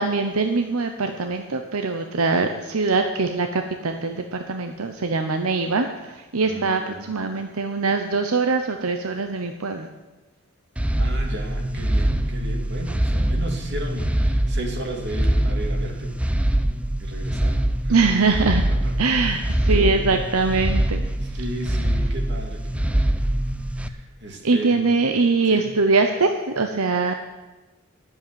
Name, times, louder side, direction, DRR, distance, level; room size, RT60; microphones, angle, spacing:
voice 1, 0.0-9.9 17.9-18.6 19.0-21.1 24.4-27.1, right 3 dB, 80° right, 6 dB, 0.9 m, -22 dB
voice 2, 6.4-7.1 11.0-16.2 17.0-17.9 18.8-18.9 19.7-20.2 21.2-23.1 23.8-24.8 25.5-25.7, right 1 dB, 50° right, 2 dB, 2.3 m, -35 dB
sound 1, 10.8-23.9, right 1 dB, 5° right, 0.5 m, -23 dB
10.5 x 7.8 x 9.7 m, 1.1 s
head